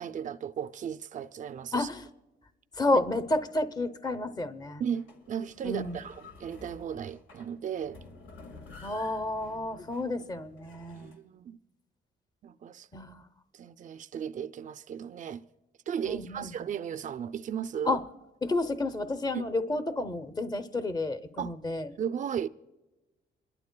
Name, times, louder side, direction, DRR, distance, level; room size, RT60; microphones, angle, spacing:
voice 1, 0.0-1.9 4.8-8.0 10.9-11.6 12.4-12.9 13.5-15.4 15.9-18.0 19.3-19.4 21.4-21.6 22.0-22.5, right 8 dB, 40° right, 0.4 m, -35 dB
voice 2, 1.7-2.1 2.7-4.8 5.6-6.0 8.8-11.1 12.9-13.3 16.0-16.5 17.9-18.0 18.4-21.9, left 2 dB, 20° left, 0.7 m, -31 dB
sound 1, 4.9-11.2, left 3 dB, 75° left, 2.0 m, -51 dB
28.0 x 12.0 x 2.2 m
cardioid pair, 90°, 20 cm